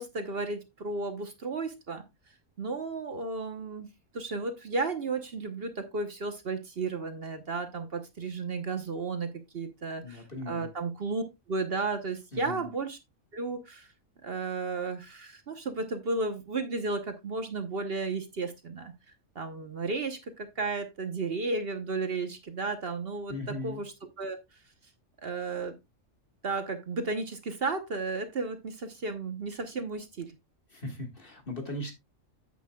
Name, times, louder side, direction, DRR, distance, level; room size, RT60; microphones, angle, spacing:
voice 1, 0.0-2.0 2.6-3.9 4.1-9.3 9.5-13.0 13.3-13.9 14.2-18.9 19.3-24.4 25.2-25.8 26.4-30.3, right 3 dB, 50° right, 8 dB, 1.2 m, -33 dB
voice 2, 10.0-10.7 12.3-12.7 23.3-23.8 30.7-31.9, left 1 dB, 45° left, 3 dB, 2.1 m, -38 dB
9.9 x 8.4 x 2.3 m, 0.21 s
omnidirectional pair, 1.3 m